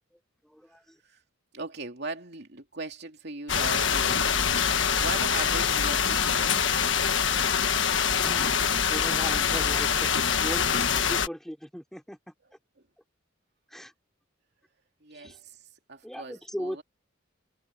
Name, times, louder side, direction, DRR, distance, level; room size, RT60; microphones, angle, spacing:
voice 1, 0.4-1.0 8.2-12.3 13.7-13.9 15.1-15.4 16.0-16.8, equal, ahead, 3.6 m, -38 dB
voice 2, 1.5-6.7 15.0-16.8, right 3 dB, 55° right, 2.8 m, -39 dB
sound 1, 3.5-11.3, left 7 dB, 65° left, 1.6 m, -25 dB
head